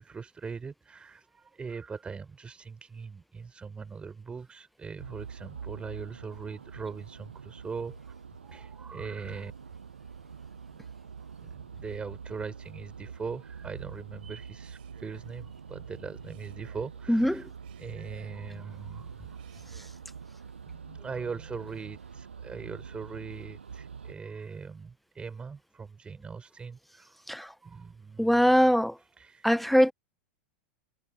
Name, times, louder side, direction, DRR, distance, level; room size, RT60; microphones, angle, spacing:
voice 1, 0.0-8.1 8.4-9.5 11.2-17.5 17.8-19.4 20.7-27.3 27.6-28.6 29.0-29.5, right 5 dB, 20° right, 4.7 m, -41 dB
sound 1, 5.0-24.1, right 6 dB, 85° right, 7.3 m, -45 dB
Male speech man speaking, 14.5-15.4 16.2-16.9 17.5-18.5 19.3-20.0, right 17 dB, 60° right, 7.0 m, -59 dB
voice 2, 28.2-28.9 29.4-29.9, equal, ahead, 0.3 m, -22 dB
hypercardioid pair, 95°, 6 cm